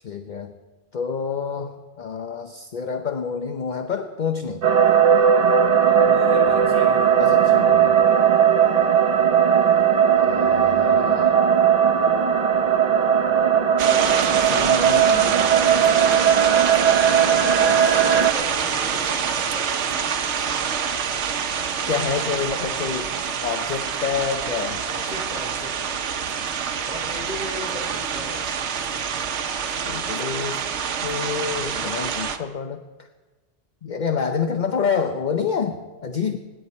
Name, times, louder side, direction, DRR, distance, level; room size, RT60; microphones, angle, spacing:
voice 1, 0.0-0.5 0.9-4.6 7.2-8.0 10.1-11.4 14.4-15.5 17.2-17.9 21.9-23.1 23.4-24.8 29.9-30.6 31.0-32.8 33.8-36.4, left 6 dB, 45° left, 7 dB, 0.8 m, -28 dB
sound 1, 4.6-18.3, right 8 dB, 40° right, 0.8 m, -18 dB
voice 2, 6.0-7.2 9.1-9.3 17.3-20.2 24.8-26.2 26.8-28.9, left 1 dB, 5° right, -4 dB, 4.9 m, -38 dB
sound 2, 13.8-32.4, right 7 dB, 90° right, 1.1 m, -26 dB
25.0 x 10.5 x 4.3 m, 1.3 s
omnidirectional pair, 1.1 m